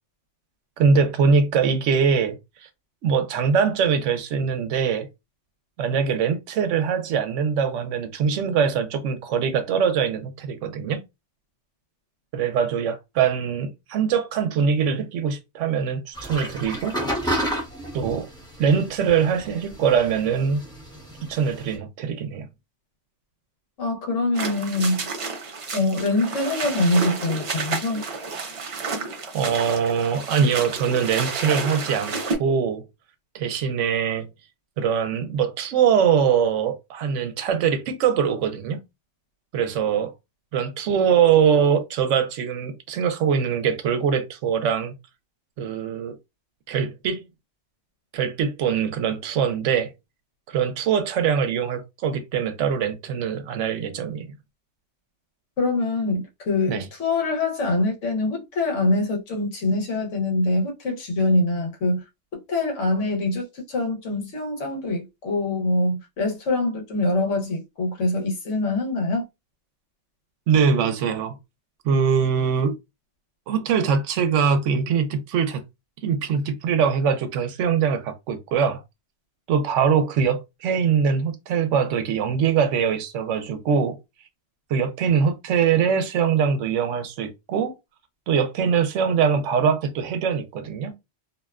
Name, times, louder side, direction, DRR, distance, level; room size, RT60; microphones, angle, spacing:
voice 1, 0.8-2.4 3.0-5.1 5.8-11.0 12.3-16.9 17.2-17.4 17.9-18.3 18.6-20.6 21.3-22.5 29.3-32.8 33.3-34.3 34.8-38.8 39.5-40.1 40.5-44.9 45.6-46.2 46.7-47.3 48.1-49.9 50.5-54.3 56.7-56.9 70.5-71.3 71.8-72.7 73.5-75.6 76.0-78.8 79.5-84.0 84.7-87.7 88.3-90.9, right 7 dB, 85° right, 0.9 m, -22 dB
sound 1, 16.1-21.8, equal, 5° left, 0.6 m, -32 dB
voice 2, 23.8-25.1 25.7-28.0 55.6-62.0 62.5-69.2, left 2 dB, 90° left, 1.2 m, -24 dB
sound 2, 24.3-32.4, right 4 dB, 60° right, 0.3 m, -31 dB
2.7 x 2.1 x 2.3 m
omnidirectional pair, 1.2 m